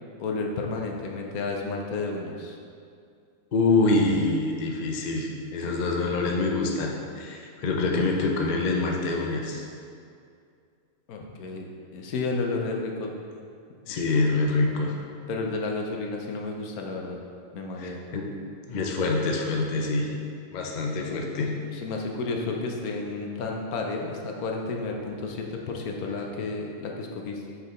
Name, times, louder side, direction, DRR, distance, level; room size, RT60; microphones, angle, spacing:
voice 1, 0.2-2.6 11.1-11.7 11.9-13.1 13.9-14.0 15.3-17.2 17.5-18.0 21.7-27.5, left 3 dB, 85° left, 1 dB, 1.3 m, -31 dB
voice 2, 3.5-9.7 13.9-14.9 17.8-18.3 18.7-20.1 20.5-21.5, left 3 dB, 45° left, 0 dB, 0.7 m, -25 dB
6.5 x 4.7 x 4.3 m, 2.4 s
omnidirectional pair, 1.5 m